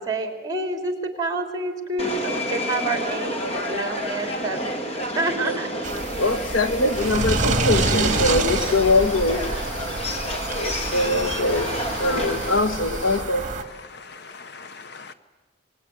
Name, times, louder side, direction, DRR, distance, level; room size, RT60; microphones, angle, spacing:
voice 1, 0.0-4.8 5.2-5.7, right 2 dB, 20° right, 3.4 m, -28 dB
Subway metro underground, 2.0-12.6, equal, 30° left, 2.2 m, -30 dB
sound 1, 5.8-13.6, right 3 dB, 40° right, 1.9 m, -27 dB
voice 2, 6.2-13.5, left 2 dB, 80° left, 1.7 m, -23 dB
voice 3, 13.4-15.1, left 4 dB, 55° left, 0.9 m, -42 dB
25.5 x 21.0 x 9.5 m
head